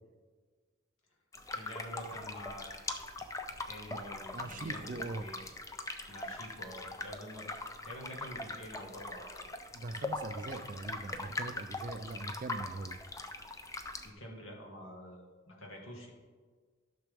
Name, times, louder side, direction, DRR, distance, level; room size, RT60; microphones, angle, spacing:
sound 1, 1.3-14.1, left 2 dB, 15° left, 0.4 m, -41 dB
voice 1, 1.5-3.4 3.7-5.4 6.1-7.5 7.8-9.5 14.0-16.1, equal, 80° left, 0 dB, 1.6 m, -47 dB
voice 2, 4.3-5.2 9.7-13.0, right 3 dB, 40° right, 10 dB, 0.4 m, -41 dB
12.5 x 5.9 x 3.5 m, 1.5 s
head